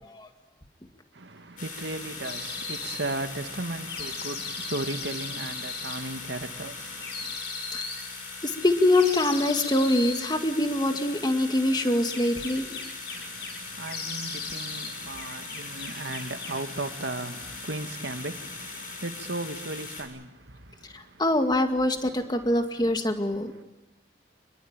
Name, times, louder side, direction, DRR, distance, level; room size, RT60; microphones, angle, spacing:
voice 1, 1.2-7.3 13.1-20.3, right 2 dB, 80° right, 1.9 m, -36 dB
sound 1, 1.6-20.0, left 4 dB, 50° left, 7.3 m, -40 dB
sound 2, 2.2-3.0 3.9-6.0 7.0-8.0 8.9-10.2 11.7-13.6 13.9-14.9 15.2-16.6, left 4 dB, 70° left, 6.1 m, -37 dB
voice 2, 8.4-12.8 20.9-23.6, left 1 dB, 25° left, 2.1 m, -24 dB
27.5 x 22.5 x 8.9 m
head